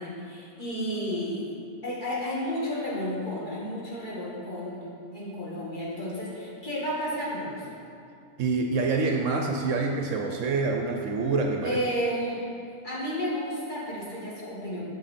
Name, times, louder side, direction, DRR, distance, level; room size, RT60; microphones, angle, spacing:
voice 1, 0.0-1.5 1.8-4.9 5.1-7.8 11.6-12.5 12.8-14.9, equal, 35° left, -7 dB, 1.8 m, -32 dB
voice 2, 8.4-11.8, right 3 dB, 70° right, 3 dB, 0.9 m, -26 dB
8.2 x 6.9 x 4.2 m, 2.5 s
omnidirectional pair, 1.5 m